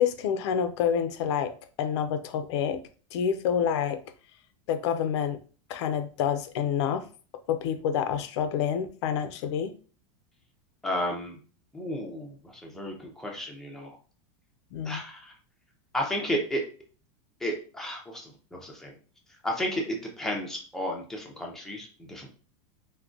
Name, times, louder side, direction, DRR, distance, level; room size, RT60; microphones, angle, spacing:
voice 1, 0.0-1.5 1.8-2.8 3.1-4.0 4.7-5.4 5.7-7.1 7.5-9.7 14.7-15.0, left 8 dB, 60° left, 0.4 m, -27 dB
voice 2, 10.8-11.4 11.7-14.0 14.8-15.3 15.9-16.6 17.4-18.9 19.4-22.3, equal, 5° left, 0.5 m, -33 dB
3.6 x 2.2 x 2.4 m
supercardioid pair, 155°, 16 cm